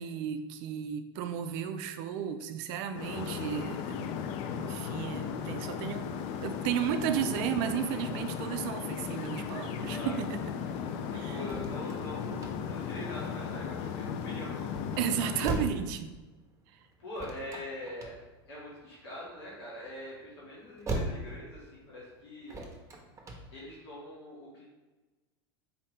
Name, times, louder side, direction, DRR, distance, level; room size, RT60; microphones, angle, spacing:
voice 1, 0.0-6.0 6.4-10.5 11.1-11.4 15.0-16.1, right 9 dB, 55° right, 8 dB, 0.4 m, -34 dB
sound 1, 2.9-15.7, left 7 dB, 50° left, 0.4 m, -36 dB
voice 2, 9.9-10.2 11.1-14.7 17.0-18.2 18.5-22.6 23.5-24.6, left 1 dB, 70° left, -7 dB, 1.5 m, -43 dB
sound 2, 11.5-23.8, right 2 dB, 20° right, 0.8 m, -41 dB
4.3 x 2.7 x 3.4 m, 1.2 s
hypercardioid pair, 85°, 14 cm